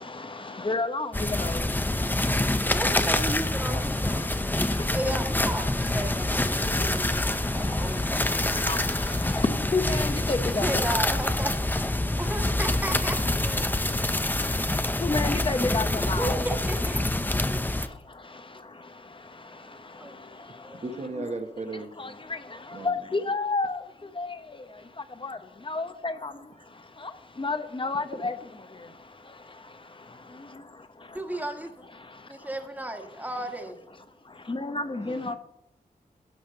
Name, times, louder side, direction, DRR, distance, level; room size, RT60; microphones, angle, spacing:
voice 1, 0.6-1.1 1.4-1.6 8.7-8.8 9.7-11.0 15.0-16.3 22.8-23.8 24.2-24.3 25.2-25.4 25.7-26.3 27.4-28.3 34.5-35.3, left 3 dB, 35° left, 10 dB, 1.0 m, -29 dB
sound 1, 1.1-17.9, left 1 dB, 10° left, 0.6 m, -26 dB
voice 2, 2.7-4.6 4.9-8.7 10.6-13.7 16.0-17.0 17.5-17.6 20.0-20.2 20.6-20.8 31.1-31.7 32.3-33.8, right 1 dB, 10° right, 4 dB, 1.6 m, -34 dB
voice 3, 20.8-21.9 22.7-23.0 28.1-28.2 35.0-35.3, right 3 dB, 45° right, 6 dB, 1.3 m, -36 dB
11.5 x 5.1 x 7.8 m, 0.81 s
wide cardioid pair, 80°, 16 cm